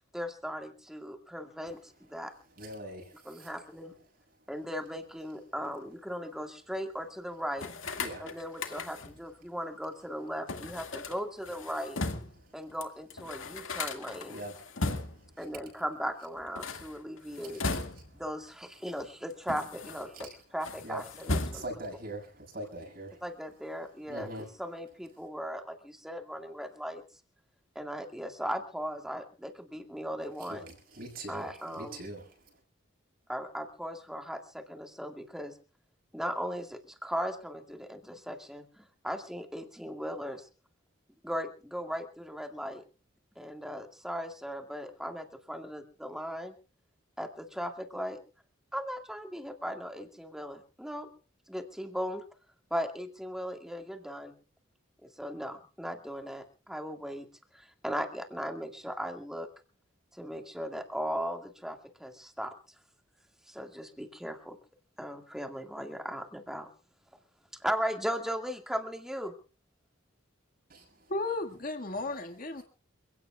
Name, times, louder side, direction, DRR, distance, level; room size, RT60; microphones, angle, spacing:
voice 1, 0.1-2.3 3.3-3.9 4.5-7.7 8.2-12.0 12.5-14.4 15.4-17.6 18.1-21.6 23.2-27.0 27.8-30.6 31.3-32.0 33.3-35.5 36.1-40.5 41.2-42.8 43.4-46.5 47.2-48.2 48.7-51.1 51.5-52.2 52.7-54.3 55.0-57.3 57.5-59.5 60.1-62.5 63.5-64.6 65.0-66.7 67.6-69.3, equal, ahead, 3 dB, 2.1 m, -37 dB
voice 2, 2.6-3.5 8.0-8.3 12.4-12.5 14.3-15.4 17.2-18.2 20.8-21.0 21.5-23.2 23.9-24.5 30.4-32.4 70.7-71.1, right 1 dB, 50° right, 0 dB, 6.6 m, -43 dB
sound 1, 7.6-9.2 10.5-12.4 12.8-12.9 13.1-15.3 16.4-18.3 19.0-20.3 20.6-21.9, left 3 dB, 80° left, 2.1 m, -37 dB
voice 3, 71.1-72.6, left 2 dB, 40° left, 5 dB, 1.8 m, -34 dB
28.5 x 17.0 x 2.4 m, 0.38 s
head